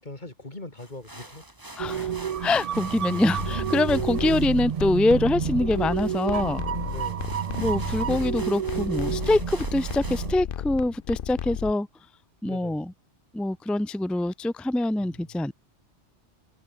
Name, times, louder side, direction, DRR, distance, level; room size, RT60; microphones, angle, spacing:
voice 1, 0.0-1.5 3.9-4.2 6.9-7.4 12.4-12.9 15.0-15.5, left 2 dB, 40° left, 3.7 m, -42 dB
sound 1, 0.8-10.4, right 1 dB, 15° right, 2.4 m, -46 dB
voice 2, 1.8-2.1 2.4-6.6 7.6-11.9 12.4-12.8 13.3-15.5, left 2 dB, ahead, 0.5 m, -24 dB
sound 2, 1.8-10.4, right 9 dB, 65° right, 0.3 m, -30 dB
sound 3, 3.4-11.7, left 10 dB, 55° left, 0.8 m, -34 dB
omnidirectional pair, 1.2 m